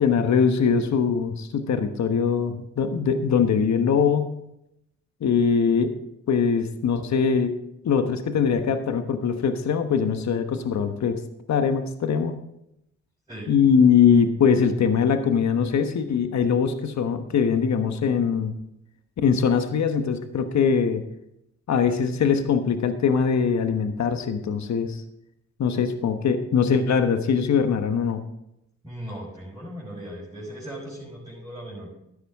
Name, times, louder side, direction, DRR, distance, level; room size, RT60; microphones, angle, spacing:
voice 1, 0.0-4.3 5.2-5.9 6.3-7.5 7.8-11.2 11.5-12.4 13.5-18.5 19.2-21.0 21.7-25.0 25.6-28.2, left 6 dB, 60° left, 8 dB, 1.2 m, -22 dB
voice 2, 28.8-31.9, equal, 10° right, -7 dB, 5.1 m, -38 dB
13.0 x 9.9 x 3.6 m, 0.82 s
supercardioid pair, 60°, 31 cm